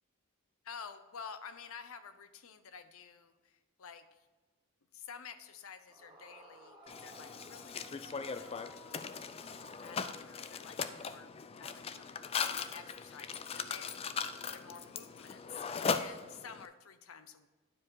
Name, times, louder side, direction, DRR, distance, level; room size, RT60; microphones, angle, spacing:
voice 1, 0.6-4.3 4.9-8.5 9.8-11.3 11.6-14.0 14.5-17.5, left 6 dB, 70° left, 11 dB, 0.6 m, -51 dB
Yell / Screaming, 5.9-10.8, right 1 dB, 20° right, 2.1 m, -57 dB
Mechanisms, 6.9-16.7, left 5 dB, 25° left, 0.3 m, -39 dB
9.8 x 4.9 x 4.6 m, 1.2 s
head